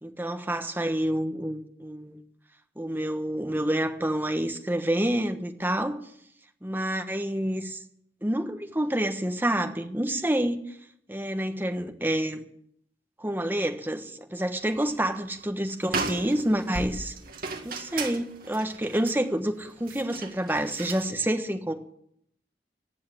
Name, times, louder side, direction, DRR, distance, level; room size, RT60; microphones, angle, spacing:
voice 1, 0.0-2.2 2.8-6.0 6.6-7.8 8.2-10.6 11.1-12.4 13.2-17.1 17.6-21.7, right 1 dB, 10° right, 6 dB, 1.2 m, -28 dB
sound 1, 14.6-15.1 15.4-15.5 15.8-21.1, right 3 dB, 55° right, 2.0 m, -36 dB
15.5 x 8.7 x 8.4 m, 0.70 s
head